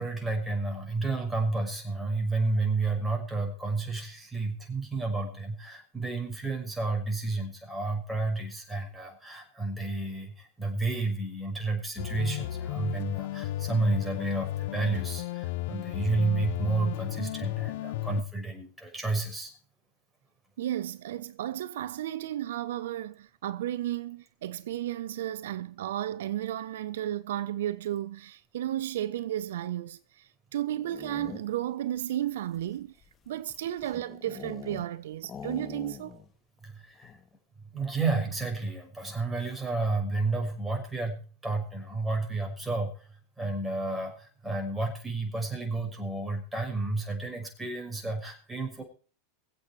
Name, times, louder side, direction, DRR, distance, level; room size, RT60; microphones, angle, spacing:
voice 1, 0.0-19.5 36.6-37.1 37.7-48.8, right 3 dB, 10° right, 6.2 m, -31 dB
sound 1, 12.0-18.2, left 15 dB, 70° left, 0.9 m, -34 dB
voice 2, 20.6-32.9 33.3-36.2, right 12 dB, 80° right, 0.7 m, -33 dB
sound 2, 30.7-31.7 32.4-35.0 35.2-36.3 36.6-36.7 37.0-37.4, left 7 dB, 30° left, 2.3 m, -44 dB
23.0 x 8.4 x 4.7 m
hypercardioid pair, 105°, 0 cm